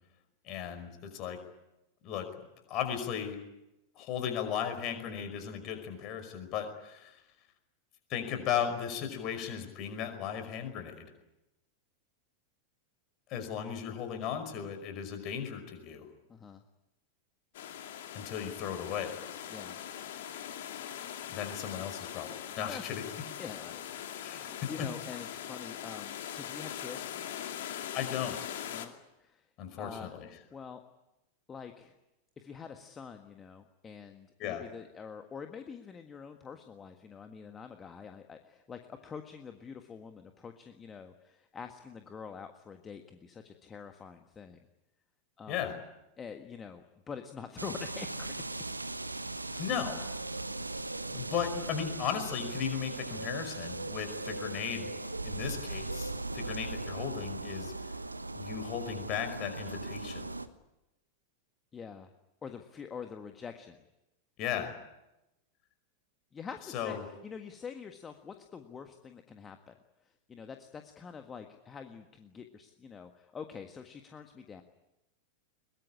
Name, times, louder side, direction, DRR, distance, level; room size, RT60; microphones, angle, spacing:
voice 1, 0.4-1.4 2.0-2.3 2.7-3.4 4.0-7.2 8.1-11.1 13.3-16.1 18.1-19.2 21.3-23.2 24.2-24.5 24.8-24.9 27.9-28.4 29.6-30.3 34.4-34.6 45.5-45.8 49.6-50.1 51.1-54.9 55.2-57.7 58.4-60.3 64.4-64.7 66.7-67.0, left 8 dB, 40° left, 7 dB, 5.3 m, -36 dB
voice 2, 16.3-16.6 19.5-19.8 22.7-22.8 23.4-23.8 24.1-27.1 28.7-29.5 29.8-30.2 30.5-30.8 31.5-31.9 32.4-44.6 45.4-45.7 46.2-48.5 49.5-49.7 61.7-62.1 62.4-63.8 66.3-69.7 70.3-74.6, left 6 dB, 20° left, 6 dB, 1.6 m, -46 dB
sound 1, 17.5-28.9, left 10 dB, 55° left, 2.5 m, -41 dB
sound 2, 47.6-60.5, right 2 dB, 85° right, 1.2 m, -38 dB
22.0 x 22.0 x 10.0 m, 0.94 s
figure-of-eight pair, 90°, 0 cm